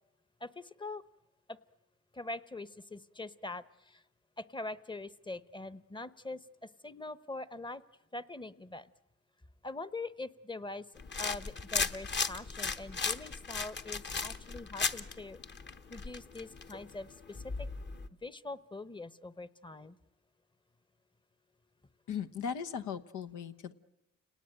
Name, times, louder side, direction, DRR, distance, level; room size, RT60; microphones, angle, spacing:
voice 1, 0.4-1.0 1.5-1.6 2.1-4.0 4.4-7.8 8.1-8.9 9.6-10.9 11.2-15.4 15.9-17.7 18.2-20.0, left 2 dB, 15° left, 15 dB, 0.9 m, -43 dB
sound 1, 11.0-18.1, left 4 dB, 40° left, 1.2 m, -37 dB
voice 2, 22.1-23.7, left 7 dB, 90° left, 9 dB, 1.1 m, -38 dB
29.5 x 18.5 x 9.0 m, 0.95 s
cardioid pair, 75°, 29 cm